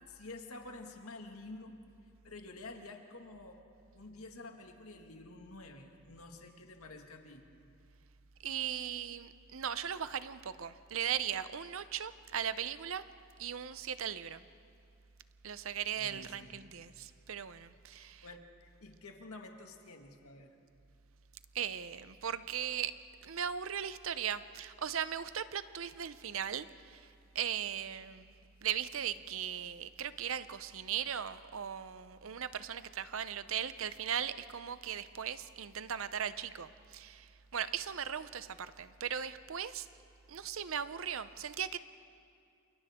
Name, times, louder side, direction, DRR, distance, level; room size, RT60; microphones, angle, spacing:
voice 1, 0.0-1.8 2.2-3.6 3.9-7.4 16.0-16.8 17.9-20.6, left 2 dB, 85° left, 1.9 m, -50 dB
voice 2, 8.4-13.0 13.4-14.4 15.4-18.3 21.5-22.9 23.2-28.3 28.6-39.9 40.3-41.8, right 8 dB, 70° right, 0.7 m, -38 dB
29.0 x 28.5 x 3.7 m
head